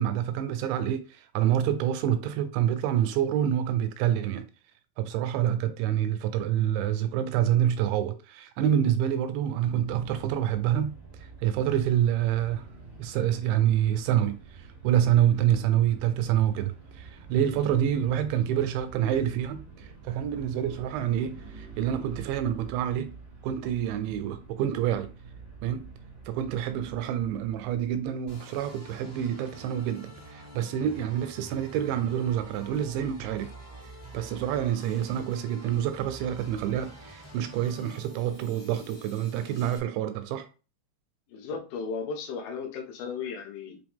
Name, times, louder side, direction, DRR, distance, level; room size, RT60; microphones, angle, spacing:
voice 1, 0.0-4.4 5.0-11.0 11.4-12.6 13.0-14.4 14.8-23.1 23.4-25.1 25.6-25.9 26.3-33.5 34.1-40.5, right 10 dB, 80° right, 2.7 m, -27 dB
sound 1, 9.5-28.2, right 4 dB, 25° right, 0.8 m, -47 dB
sound 2, 28.3-39.8, right 1 dB, 25° left, 0.4 m, -47 dB
voice 2, 41.3-43.8, left 5 dB, 80° left, 3.6 m, -35 dB
8.4 x 3.3 x 3.5 m
omnidirectional pair, 5.6 m